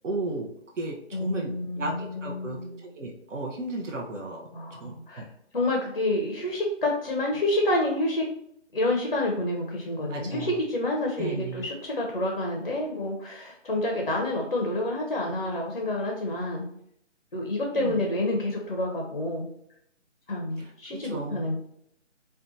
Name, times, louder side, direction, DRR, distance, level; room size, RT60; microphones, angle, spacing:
voice 1, 0.0-0.5 0.8-5.3 10.1-10.5 11.2-11.7 17.8-18.0 20.6-21.6, right 2 dB, 80° right, 0 dB, 0.7 m, -35 dB
voice 2, 1.1-2.8 4.5-5.3 5.5-8.3 8.7-16.7 17.3-19.5 20.3-21.6, left 1 dB, 45° left, 0 dB, 0.4 m, -28 dB
2.6 x 2.2 x 2.5 m, 0.71 s
figure-of-eight pair, 160°, 36 cm